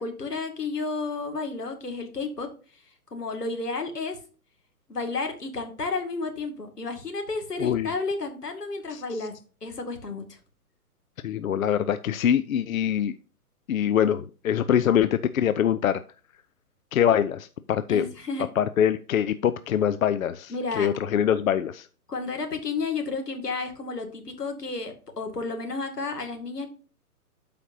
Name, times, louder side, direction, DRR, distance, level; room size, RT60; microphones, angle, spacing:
voice 1, 0.0-2.5 3.1-4.2 4.9-9.3 9.6-10.4 17.9-18.4 20.5-20.9 22.1-26.7, left 3 dB, 85° left, 5 dB, 2.4 m, -32 dB
voice 2, 7.6-7.9 8.9-9.2 11.2-13.2 13.7-16.0 16.9-18.1 18.6-21.9, left 9 dB, 60° left, 12 dB, 0.6 m, -24 dB
12.5 x 5.1 x 2.7 m, 0.37 s
figure-of-eight pair, 130°, 46 cm